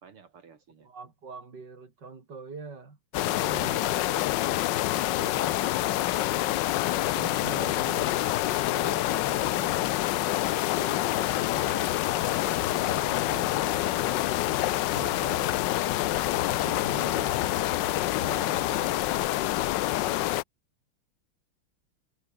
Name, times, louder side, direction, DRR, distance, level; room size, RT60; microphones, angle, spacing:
voice 1, 0.0-0.9 5.9-6.2 6.9-7.2 17.4-17.8, right 6 dB, 80° right, 3.3 m, -53 dB
voice 2, 0.8-3.0 3.3-4.4 4.7-5.6 7.0-12.2 12.4-15.9 16.6-17.5 18.2-19.2, right 4 dB, 50° right, 4.4 m, -44 dB
sound 1, 3.1-20.4, left 16 dB, 75° left, 1.1 m, -27 dB
sound 2, 11.1-18.9, left 5 dB, 40° left, 2.7 m, -44 dB
omnidirectional pair, 2.4 m